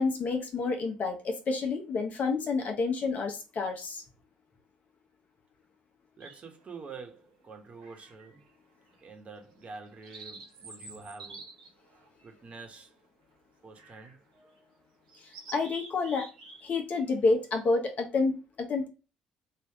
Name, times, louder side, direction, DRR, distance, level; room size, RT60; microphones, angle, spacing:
voice 1, 0.0-4.0 15.5-16.3 16.6-18.9, left 3 dB, 50° left, 1.0 m, -29 dB
voice 2, 6.2-8.5 9.0-11.5 12.2-12.9 13.6-14.8, right 4 dB, 40° right, 1.1 m, -47 dB
sound 1, 6.2-6.7 7.8-8.5 8.9-9.0 9.6-13.1 13.8-14.2 14.6-14.7 15.1-16.6 16.9-17.2, right 3 dB, 85° right, 1.0 m, -49 dB
3.1 x 2.7 x 3.5 m
hypercardioid pair, 50°, 3 cm